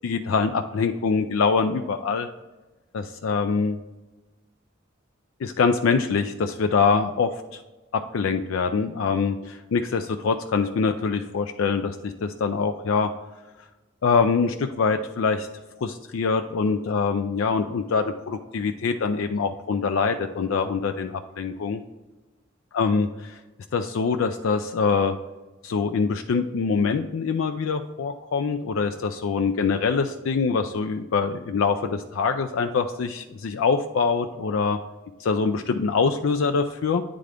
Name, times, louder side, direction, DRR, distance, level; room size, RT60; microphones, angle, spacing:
voice 1, 0.0-2.3 2.9-3.8 5.4-7.3 7.9-13.1 14.0-15.5 15.8-21.8 22.7-23.4 23.7-25.2 25.6-34.8 35.2-37.0, left 5 dB, 70° left, 7 dB, 0.4 m, -24 dB
9.4 x 3.7 x 3.4 m, 1.1 s
head